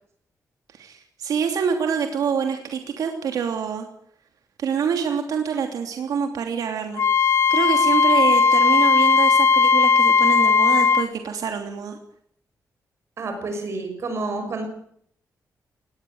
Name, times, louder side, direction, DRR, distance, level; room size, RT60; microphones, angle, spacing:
voice 1, 0.7-3.9 4.6-7.0 7.5-12.0, right 7 dB, 90° right, 4 dB, 3.0 m, -26 dB
Wind instrument woodwind instrument, 7.0-11.1, left 5 dB, 45° left, 1.0 m, -17 dB
voice 2, 13.2-14.7, right 3 dB, 50° right, 6 dB, 6.5 m, -29 dB
20.0 x 19.0 x 8.0 m, 0.66 s
wide cardioid pair, 180°, 6 cm